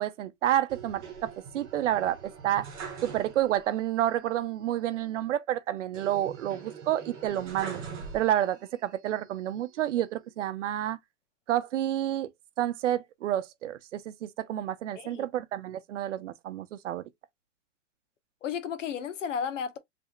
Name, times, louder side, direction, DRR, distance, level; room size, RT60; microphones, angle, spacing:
voice 1, 0.0-2.7 3.0-7.8 8.1-11.0 11.5-12.3 12.6-17.0, right 12 dB, 80° right, 0.7 m, -29 dB
sound 1, 0.7-3.7 4.0-4.1 5.9-8.7 9.2-10.0, right 6 dB, 10° right, 0.5 m, -43 dB
voice 2, 15.0-15.3 18.4-19.8, left 7 dB, 85° left, 0.9 m, -33 dB
3.4 x 2.4 x 3.0 m
hypercardioid pair, 165°, 36 cm